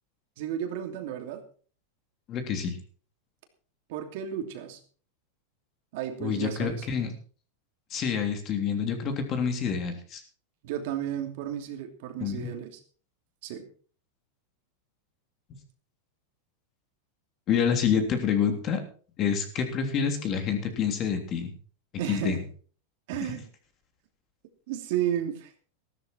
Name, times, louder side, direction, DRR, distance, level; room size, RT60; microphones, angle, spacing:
voice 1, 0.4-1.4 3.9-4.8 5.9-6.9 10.6-12.8 13.4-13.7 22.0-22.4 23.1-23.4 24.7-25.5, right 10 dB, 60° right, 5 dB, 2.9 m, -33 dB
voice 2, 2.3-2.8 6.2-7.1 7.9-10.2 12.2-12.5 17.5-18.8 19.2-21.5 22.1-22.4, left 7 dB, 30° left, 5 dB, 3.2 m, -27 dB
15.0 x 12.5 x 4.6 m, 0.42 s
supercardioid pair, 155°, 0 cm